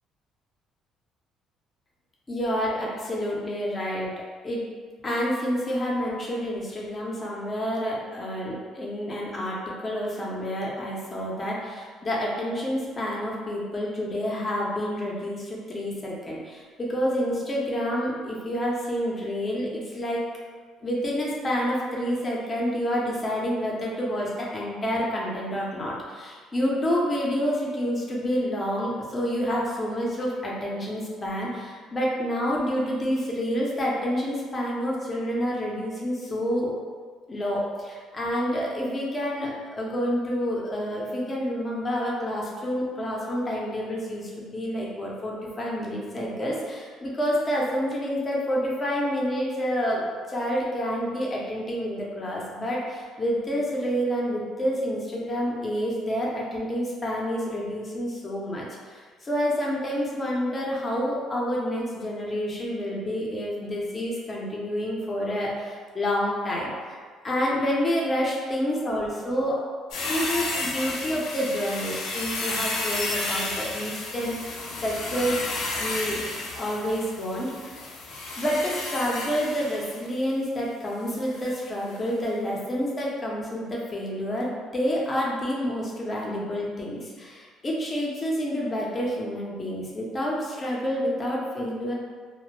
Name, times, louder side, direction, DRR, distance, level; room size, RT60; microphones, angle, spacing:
voice 1, 2.3-4.1 4.4-4.6 5.0-20.2 20.8-36.7 37.3-69.5 70.1-75.4 75.8-76.2 76.5-77.9 78.4-91.9, equal, 30° left, -4 dB, 0.6 m, -28 dB
sound 1, 69.9-80.1 81.3-81.6 81.9-82.0, left 2 dB, 80° left, 0.5 m, -32 dB
2.1 x 2.0 x 3.1 m, 1.5 s
cardioid pair, 90°, 0 cm